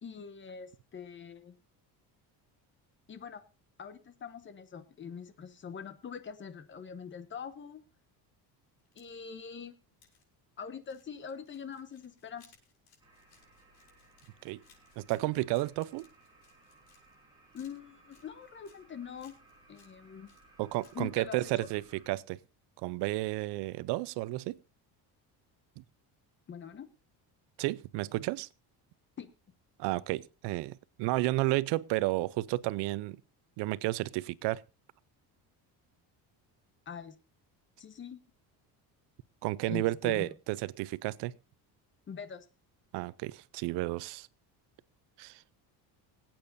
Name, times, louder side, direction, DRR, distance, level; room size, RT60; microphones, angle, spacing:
voice 1, 0.0-1.5 3.1-3.4 3.8-7.8 8.9-9.7 10.6-12.5 17.5-19.3 19.7-20.3 20.9-21.7 26.5-26.9 29.2-29.3 36.9-37.1 37.8-38.2 39.7-40.4 42.1-42.4, left 6 dB, 30° left, 1.1 m, -43 dB
sound 1, 8.8-9.4 10.0-10.2 10.8-17.2 17.5-18.8 19.2-19.9 20.3-21.1 21.4-21.5, left 6 dB, 80° left, 6.5 m, -65 dB
sound 2, 13.0-22.1, right 2 dB, 10° right, 3.8 m, -62 dB
voice 2, 15.0-16.1 20.6-22.4 22.8-24.6 25.8-25.9 27.6-28.5 29.8-33.2 33.6-34.6 39.4-41.3 42.9-44.3 45.2-45.4, right 19 dB, 85° right, 0.6 m, -32 dB
25.0 x 8.7 x 2.6 m
cardioid pair, 155°, 40 cm